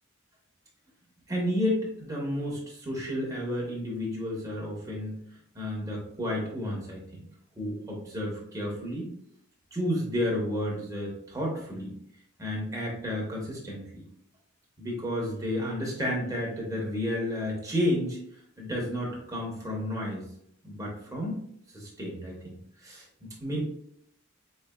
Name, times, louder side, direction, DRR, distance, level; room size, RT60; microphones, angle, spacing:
voice 1, 1.3-5.2 5.5-7.3 7.6-9.1 9.7-11.9 12.4-14.1 14.8-18.2 18.6-20.3 20.6-21.4 21.7-23.6, left 1 dB, 15° right, -2 dB, 0.8 m, -32 dB
4.4 x 3.2 x 2.2 m, 0.69 s
head